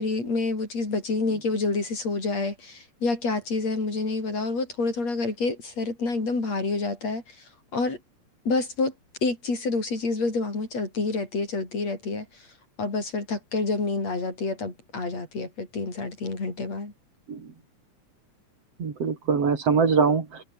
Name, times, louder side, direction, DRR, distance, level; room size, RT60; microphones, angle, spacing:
voice 1, 0.0-7.4 7.7-8.0 8.5-8.9 9.2-12.3 12.8-16.9, left 3 dB, 60° left, 8.1 m, -28 dB
voice 2, 18.8-20.4, right 5 dB, 55° right, 4.0 m, -23 dB
omnidirectional pair, 3.3 m